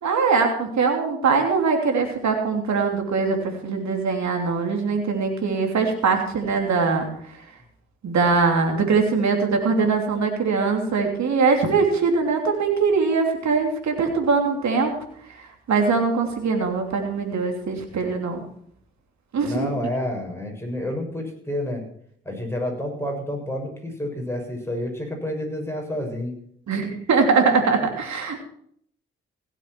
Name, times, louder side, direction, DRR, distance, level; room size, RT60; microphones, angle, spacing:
voice 1, 0.0-7.0 8.0-14.9 15.7-18.4 19.3-19.7 26.7-28.4, right 4 dB, 65° right, 3 dB, 3.1 m, -22 dB
voice 2, 19.4-21.8 22.2-26.3, left 1 dB, 10° left, 1 dB, 6.6 m, -29 dB
16.5 x 8.2 x 6.0 m, 0.64 s
hypercardioid pair, 40°, 30 cm